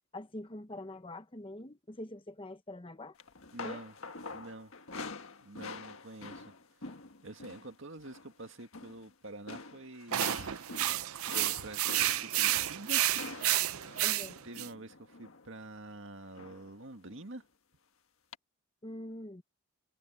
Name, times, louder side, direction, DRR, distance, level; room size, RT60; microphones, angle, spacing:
voice 1, 0.1-3.1 3.6-3.8 14.0-14.4 18.8-19.4, left 1 dB, 25° left, 0.9 m, -44 dB
sound 1, 3.2-7.7 8.0-8.3 8.6-9.1 9.5-15.5 16.4-16.7 17.1-17.3 18.3-18.4, left 4 dB, 65° left, 1.6 m, -46 dB
voice 2, 3.5-3.9 4.3-4.7 5.4-6.5 6.8-6.9 7.2-10.9 11.3-11.8 12.2-13.0 14.4-17.4, right 2 dB, 60° right, 2.2 m, -47 dB
sound 2, 10.1-14.7, right 14 dB, 75° right, 0.6 m, -31 dB
head